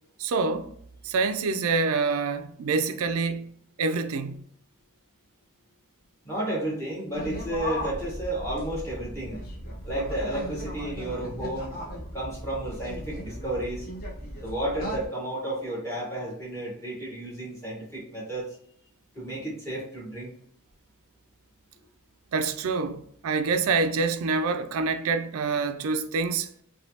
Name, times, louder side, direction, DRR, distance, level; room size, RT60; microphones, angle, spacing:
voice 1, 0.2-0.7 1.0-3.5 3.8-4.4 22.3-26.5, right 4 dB, 70° right, 0.4 m, -26 dB
voice 2, 6.2-9.4 9.8-11.7 12.1-13.9 14.4-18.5 19.1-20.3, right 1 dB, 10° left, 1.0 m, -32 dB
sound 1, 7.1-15.1, equal, 45° left, 0.8 m, -37 dB
3.2 x 2.3 x 2.7 m
head